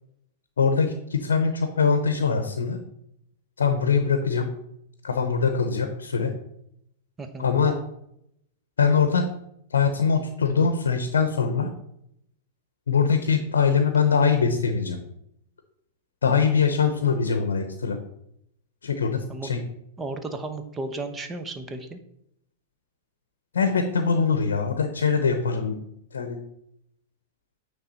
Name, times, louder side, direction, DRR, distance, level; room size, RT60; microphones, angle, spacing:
voice 1, 0.6-2.8 3.6-4.5 5.0-6.3 7.4-7.8 8.8-9.3 9.7-11.7 12.9-15.0 16.2-18.0 18.8-19.6 23.5-25.8 26.1-26.4, left 5 dB, 85° left, 7 dB, 0.7 m, -22 dB
voice 2, 7.2-7.5 19.3-19.5 20.0-22.0, right 2 dB, 15° right, 7 dB, 0.9 m, -34 dB
9.3 x 3.5 x 4.1 m, 0.77 s
hypercardioid pair, 110°, 0 cm